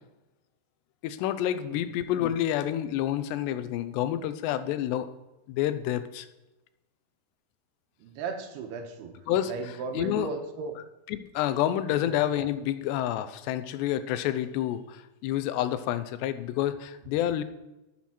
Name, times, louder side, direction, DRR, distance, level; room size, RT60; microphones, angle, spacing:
voice 1, 1.0-5.1 5.5-6.3 9.3-10.3 11.1-17.4, left 12 dB, 90° left, 12 dB, 2.8 m, -29 dB
voice 2, 8.0-9.1 9.5-10.7 12.0-12.1, right 5 dB, 75° right, 5 dB, 2.9 m, -35 dB
12.0 x 7.6 x 4.3 m, 1.0 s
omnidirectional pair, 4.8 m